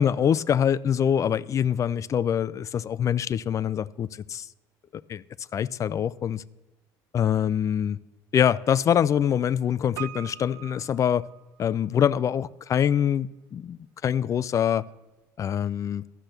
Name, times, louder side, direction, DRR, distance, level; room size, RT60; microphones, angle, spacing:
voice 1, 0.0-4.5 4.9-5.2 5.5-6.4 7.1-8.0 8.3-11.2 11.6-14.8 15.4-16.0, left 9 dB, 40° left, 0.4 m, -24 dB
Piano, 10.0-12.0 12.3-12.4, right 14 dB, 80° right, 0.5 m, -42 dB
12.0 x 5.9 x 6.6 m
supercardioid pair, 90°, 9 cm